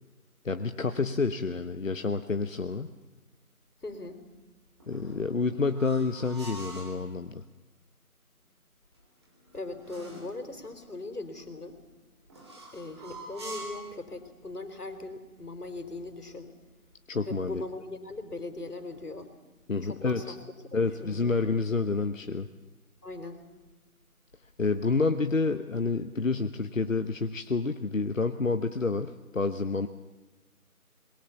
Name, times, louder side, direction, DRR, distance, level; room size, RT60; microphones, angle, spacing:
voice 1, 0.4-2.9 4.9-7.4 17.1-17.6 19.7-20.3 20.7-22.5 24.6-29.9, left 4 dB, 60° left, 8 dB, 1.2 m, -29 dB
voice 2, 3.8-4.2 9.5-11.8 12.7-16.5 17.2-19.3 19.8-20.4 20.7-21.4 23.0-23.4, left 2 dB, 85° left, 8 dB, 4.2 m, -40 dB
sound 1, 4.8-7.0 8.9-10.4 12.3-13.9, right 1 dB, 20° right, 3.7 m, -45 dB
27.0 x 22.0 x 7.1 m, 1.1 s
figure-of-eight pair, 170°, 44 cm